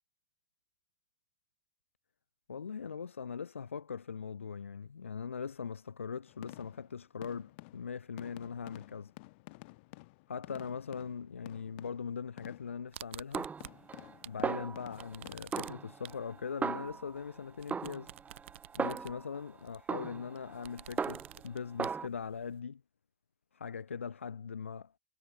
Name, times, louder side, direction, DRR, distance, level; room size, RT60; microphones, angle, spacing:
voice 1, 2.5-9.1 10.3-13.5 14.2-18.1 18.8-22.8 23.5-24.9, left 6 dB, 85° left, 0.9 m, -41 dB
sound 1, 6.3-12.9 13.6-15.8, left 24 dB, 65° left, 3.4 m, -52 dB
sound 2, 12.9-14.4 14.7-22.6, right 14 dB, 70° right, 1.1 m, -51 dB
Snare drum, 13.3-14.2 14.4-15.2 15.5-17.3 17.7-19.4 19.9-21.5 21.8-22.1, right 5 dB, 20° right, 1.1 m, -37 dB
hypercardioid pair, 80°, 7 cm